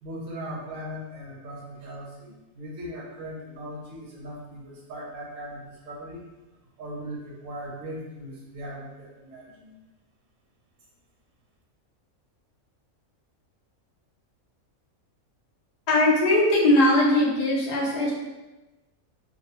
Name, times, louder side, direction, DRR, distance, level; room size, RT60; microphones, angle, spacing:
voice 1, 0.0-6.2 6.8-9.7, equal, 70° right, -3 dB, 0.9 m, -39 dB
voice 2, 15.9-18.1, left 1 dB, 60° left, -4 dB, 0.4 m, -20 dB
2.5 x 2.1 x 2.8 m, 1.1 s
omnidirectional pair, 1.5 m